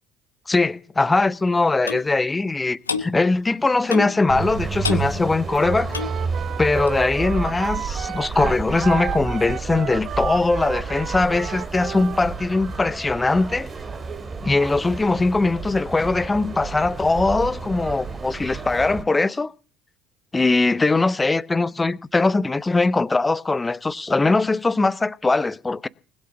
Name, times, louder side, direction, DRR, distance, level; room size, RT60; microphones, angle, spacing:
voice 1, 0.5-5.9 6.6-13.7 14.4-19.5 20.3-25.9, left 3 dB, 20° left, 0.7 m, -21 dB
Clock, 1.9-2.1 2.9-3.1 3.9-4.2 4.8-5.1 5.9-6.2 6.9-7.0, left 5 dB, 85° left, 1.0 m, -27 dB
sound 1, 4.3-19.0, right 5 dB, 35° right, 2.7 m, -31 dB
Wind instrument woodwind instrument, 5.5-12.2, right 10 dB, 50° right, 0.7 m, -32 dB
20.0 x 8.5 x 8.3 m
figure-of-eight pair, 55°, 0 cm